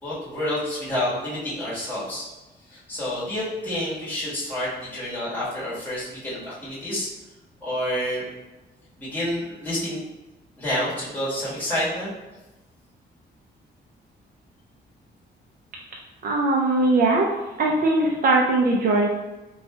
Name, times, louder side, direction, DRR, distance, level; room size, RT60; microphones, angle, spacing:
voice 1, 0.0-2.3 2.7-7.1 7.6-8.2 9.0-10.0 10.6-12.1, left 1 dB, 10° left, -10 dB, 1.4 m, -28 dB
voice 2, 16.2-17.3 17.6-19.1, right 2 dB, 50° right, -1 dB, 0.4 m, -20 dB
2.7 x 2.3 x 4.1 m, 1.1 s
cardioid pair, 155°, 19 cm